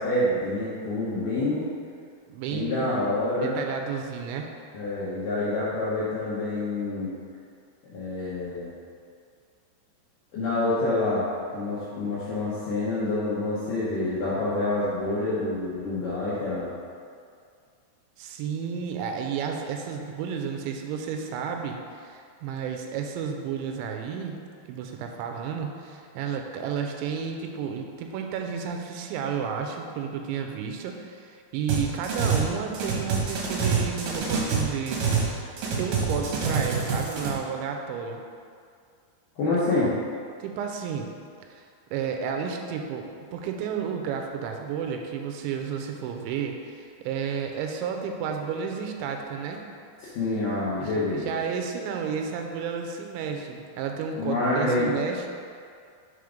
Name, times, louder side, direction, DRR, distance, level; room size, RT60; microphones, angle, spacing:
voice 1, 0.0-1.6 2.5-3.6 4.7-7.1 7.9-8.7 10.3-11.3 11.5-16.7 39.4-39.9 50.0-51.3 54.2-54.9, left 2 dB, 75° left, -10 dB, 2.0 m, -27 dB
voice 2, 2.3-2.9 3.4-4.5 18.2-24.4 24.7-35.1 35.8-38.2 39.8-39.9 40.4-41.1 41.5-41.6 41.9-49.6 50.8-55.3, right 7 dB, 90° right, 3 dB, 2.9 m, -32 dB
sound 1, 31.7-32.5 32.7-35.3 35.6-37.3, right 5 dB, 75° right, 2.1 m, -26 dB
7.1 x 3.7 x 5.0 m, 2.3 s
omnidirectional pair, 5.2 m